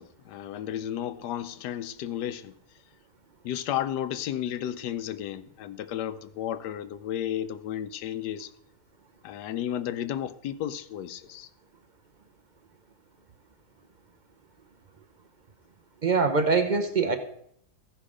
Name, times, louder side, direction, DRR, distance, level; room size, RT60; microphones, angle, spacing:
voice 1, 0.0-2.5 3.4-8.5 9.2-11.5, left 11 dB, 85° left, 1.3 m, -33 dB
voice 2, 16.0-17.2, right 4 dB, 50° right, 0.5 m, -23 dB
15.0 x 5.5 x 4.9 m
omnidirectional pair, 1.7 m